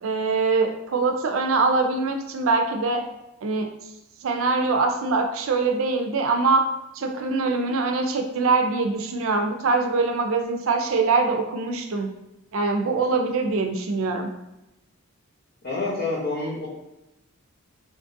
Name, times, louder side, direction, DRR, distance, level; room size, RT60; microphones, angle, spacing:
voice 1, 0.0-3.0 3.4-3.7 4.2-6.6 6.9-12.1 12.5-14.3, right 3 dB, 70° right, 5 dB, 0.4 m, -23 dB
voice 2, 15.6-16.7, left 3 dB, 50° left, -5 dB, 0.8 m, -27 dB
3.8 x 2.5 x 2.6 m, 0.93 s
head